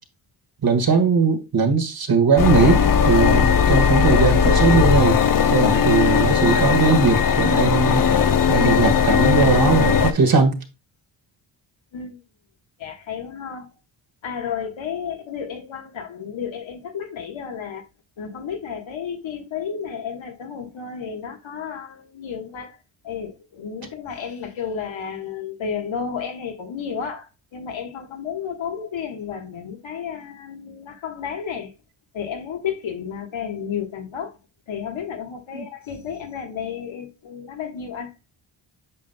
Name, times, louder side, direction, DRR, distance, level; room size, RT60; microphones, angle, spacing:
voice 1, 0.6-5.2 5.5-8.0 8.5-10.6 35.5-35.6, right 4 dB, 45° right, 1.6 m, -19 dB
sound 1, 2.4-10.1, left 7 dB, 45° left, 0.8 m, -18 dB
voice 2, 12.8-13.7 14.2-17.8 18.2-22.8 23.0-31.7 32.1-34.4 34.7-38.1, left 7 dB, 70° left, 1.5 m, -32 dB
8.5 x 5.2 x 2.3 m
cardioid pair, 55°, 48 cm